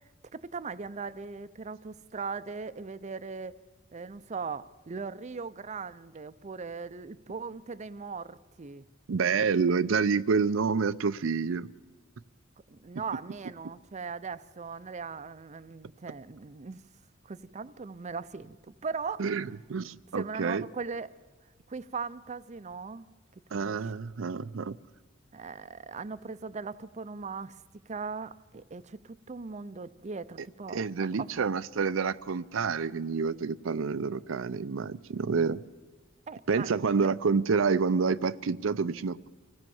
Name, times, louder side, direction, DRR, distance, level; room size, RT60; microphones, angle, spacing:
voice 1, 0.3-3.5 3.9-8.8 12.7-16.8 17.2-19.2 20.1-21.1 21.7-23.1 23.5-23.8 25.3-30.8 31.2-31.3 36.3-37.0, right 5 dB, 35° right, 0.5 m, -39 dB
voice 2, 9.1-11.7 19.2-20.6 23.5-24.8 30.4-30.5 30.7-35.6 36.5-39.3, right 5 dB, 80° right, 0.5 m, -28 dB
25.0 x 17.0 x 7.1 m
head